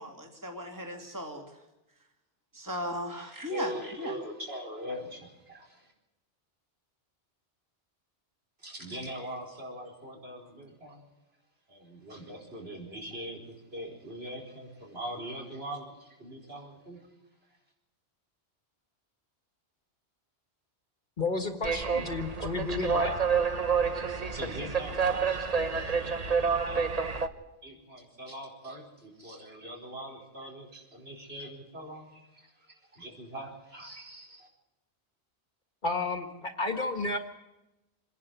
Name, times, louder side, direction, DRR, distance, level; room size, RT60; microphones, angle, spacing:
voice 1, 0.0-1.6 2.5-3.7 4.0-4.1, equal, 15° right, 2 dB, 2.8 m, -37 dB
voice 2, 3.1-5.9 8.6-11.0 11.7-17.0 23.8-27.1 27.6-34.5, equal, 65° right, 0 dB, 5.0 m, -42 dB
voice 3, 21.2-23.1 35.8-37.2, left 3 dB, 45° left, 6 dB, 1.7 m, -31 dB
sound 1, 21.6-27.3, right 5 dB, 35° right, 1.1 m, -28 dB
27.0 x 11.0 x 9.3 m, 0.97 s
omnidirectional pair, 1.1 m